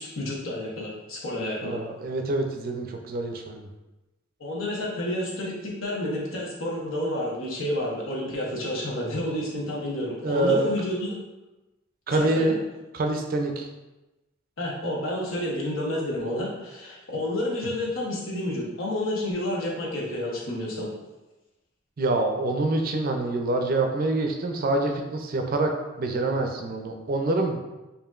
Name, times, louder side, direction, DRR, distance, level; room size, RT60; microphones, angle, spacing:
voice 1, 0.0-1.8 4.4-11.2 12.1-12.6 14.6-20.9, left 1 dB, 85° left, -3 dB, 1.0 m, -30 dB
voice 2, 1.6-3.7 10.2-10.7 12.1-12.6 12.9-13.7 22.0-25.7 26.0-27.6, right 2 dB, 50° right, 4 dB, 0.5 m, -26 dB
4.8 x 2.7 x 2.4 m, 1.0 s
head